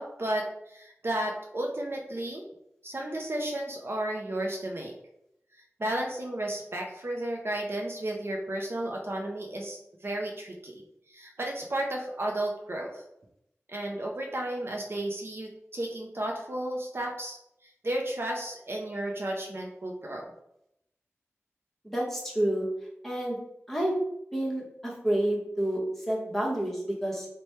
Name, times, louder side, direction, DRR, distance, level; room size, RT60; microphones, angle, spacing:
voice 1, 0.0-2.4 2.8-4.9 5.5-10.7 11.1-13.0 13.7-17.4 17.6-20.3, right 1 dB, 55° right, 0 dB, 0.5 m, -33 dB
voice 2, 21.9-22.7 23.0-23.4 23.7-24.0 24.3-27.3, right 1 dB, 5° left, -4 dB, 1.1 m, -29 dB
3.1 x 2.2 x 4.2 m, 0.79 s
wide cardioid pair, 75°, 5 cm